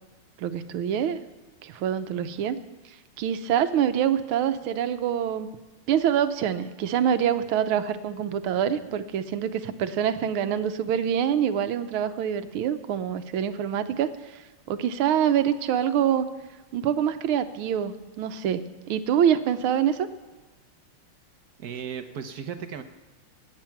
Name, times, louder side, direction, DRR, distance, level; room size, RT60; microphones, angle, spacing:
voice 1, 0.4-1.2 1.6-2.6 3.2-5.5 5.9-14.4 14.7-16.2 16.7-18.6 18.9-20.1, right 9 dB, 85° right, 11 dB, 1.6 m, -25 dB
voice 2, 21.6-22.8, right 7 dB, 60° right, 8 dB, 1.1 m, -35 dB
16.5 x 10.0 x 5.8 m, 1.2 s
omnidirectional pair, 2.3 m